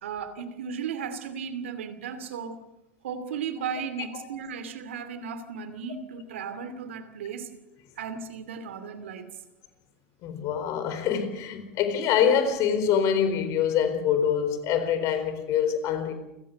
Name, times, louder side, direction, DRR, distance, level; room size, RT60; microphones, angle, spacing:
voice 1, 0.0-2.6 3.0-7.5 8.0-9.3, right 6 dB, 80° right, 2.7 m, -35 dB
voice 2, 10.2-16.1, left 8 dB, 55° left, 4.3 m, -25 dB
29.0 x 16.0 x 6.7 m
hypercardioid pair, 90°, 7 cm